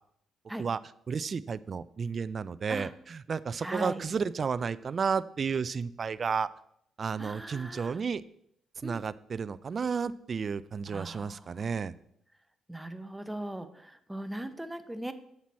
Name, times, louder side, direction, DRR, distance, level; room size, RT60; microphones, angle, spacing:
voice 1, 1.1-6.5 7.0-8.2 8.8-11.9, right 5 dB, 45° right, 17 dB, 0.3 m, -32 dB
voice 2, 3.6-4.0 7.2-8.0 8.8-9.0 10.9-11.8 12.7-15.1, right 1 dB, 5° right, 10 dB, 0.6 m, -39 dB
7.6 x 5.9 x 4.1 m, 0.72 s
cardioid pair, 90°, 0 cm